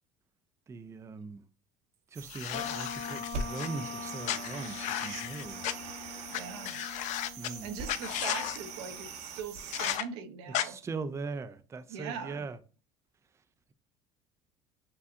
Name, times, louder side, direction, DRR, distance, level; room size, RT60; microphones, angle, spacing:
voice 1, 0.7-1.4 2.1-5.7 7.4-7.7 10.6-12.6, right 4 dB, 20° right, 0.4 m, -40 dB
sound 1, 2.1-10.0, right 4 dB, 55° right, 0.9 m, -42 dB
sound 2, 2.3-3.7 4.2-5.7 6.3-6.4 6.6-7.5 7.9-8.6 9.7-10.0 10.5-10.7, left 12 dB, 60° left, 0.5 m, -34 dB
sound 3, 2.5-9.2, left 6 dB, 45° left, 0.8 m, -44 dB
voice 2, 6.3-6.8 7.6-10.8 11.9-12.5, right 6 dB, 85° right, 0.9 m, -41 dB
7.0 x 2.4 x 2.5 m
supercardioid pair, 100°, 14 cm